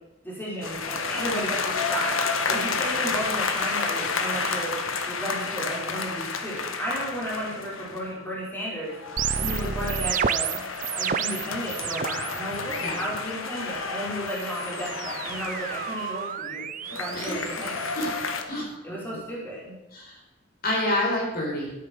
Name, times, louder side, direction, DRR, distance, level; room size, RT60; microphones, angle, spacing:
voice 1, 0.2-4.7 5.1-8.9 9.3-10.6 11.0-16.6 16.9-17.8 18.8-19.8, equal, 10° left, -5 dB, 4.7 m, -33 dB
sound 1, 0.6-8.1 8.8-16.3 16.9-18.4, left 4 dB, 90° left, 1.5 m, -31 dB
sound 2, 9.2-12.4 12.7-13.3 14.3-18.4, right 7 dB, 40° right, 0.5 m, -31 dB
voice 2, 17.1-17.4 17.9-18.1 18.4-19.0 19.9-20.2 20.6-21.7, left 1 dB, 45° left, -3 dB, 4.8 m, -28 dB
13.5 x 9.7 x 7.0 m, 0.97 s
head